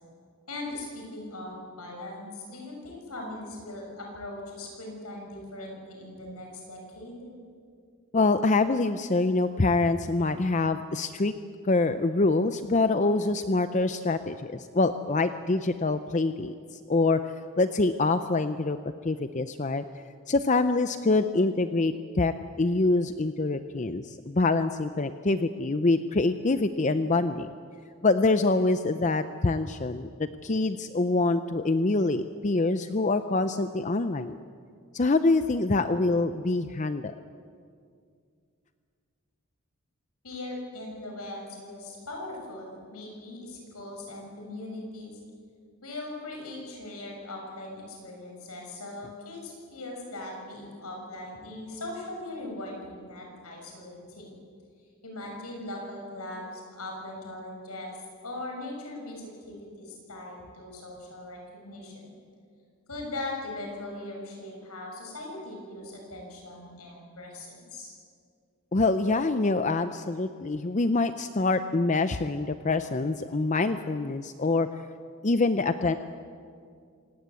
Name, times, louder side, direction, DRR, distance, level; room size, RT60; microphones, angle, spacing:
voice 1, 0.5-7.3 40.2-45.2 45.8-54.3 55.0-57.9 58.2-62.1 62.9-67.9, left 2 dB, 90° left, 0 dB, 6.7 m, -40 dB
voice 2, 8.1-11.3 11.6-18.8 19.0-19.8 20.3-27.5 28.0-34.4 34.9-37.1 68.7-74.9 75.2-75.9, left 3 dB, 35° left, 10 dB, 0.6 m, -25 dB
27.0 x 18.0 x 8.3 m, 2.3 s
head